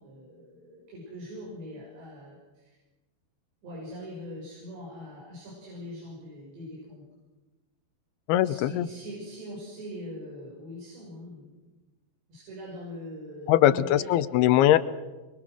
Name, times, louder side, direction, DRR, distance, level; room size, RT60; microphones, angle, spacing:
voice 1, 0.0-2.8 3.6-7.1 8.4-11.6 12.3-14.1, equal, 85° right, -5 dB, 8.3 m, -42 dB
voice 2, 8.3-8.9 13.5-14.8, left 13 dB, 75° left, 13 dB, 2.7 m, -21 dB
24.5 x 23.5 x 6.4 m, 1.2 s
omnidirectional pair, 4.9 m